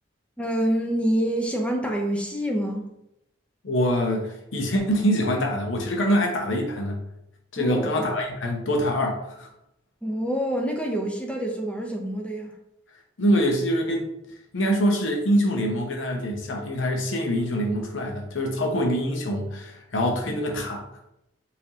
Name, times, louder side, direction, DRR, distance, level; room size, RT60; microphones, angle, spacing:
voice 1, 0.4-2.9 7.6-7.9 10.0-12.6, equal, 5° left, 1 dB, 0.6 m, -26 dB
voice 2, 3.6-7.0 7.5-9.5 13.2-14.1 14.5-20.8, equal, 85° left, 2 dB, 0.7 m, -24 dB
4.6 x 3.4 x 2.8 m, 0.81 s
head